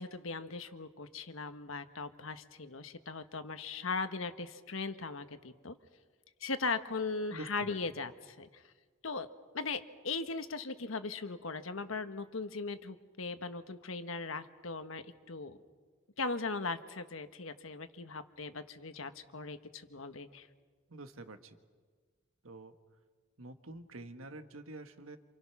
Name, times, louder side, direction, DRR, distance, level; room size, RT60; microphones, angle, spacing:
voice 1, 0.0-5.7 6.4-8.6 9.0-9.3 9.5-15.6 16.2-20.5, left 4 dB, 80° left, 9 dB, 1.3 m, -39 dB
voice 2, 7.3-7.8 20.9-21.6 22.4-22.8 23.4-25.2, right 2 dB, 85° right, 8 dB, 1.6 m, -47 dB
27.5 x 27.5 x 6.0 m, 1.5 s
head